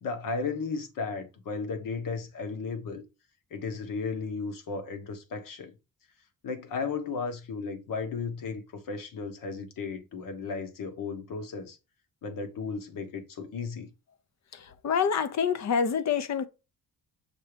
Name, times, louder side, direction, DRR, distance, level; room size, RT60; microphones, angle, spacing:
voice 1, 0.0-3.0 3.5-5.7 6.4-11.8 12.2-13.9, left 4 dB, 70° left, 1.4 m, -35 dB
voice 2, 14.5-16.5, left 6 dB, 50° left, 0.8 m, -27 dB
6.7 x 2.8 x 5.0 m
cardioid pair, 145°, 35 cm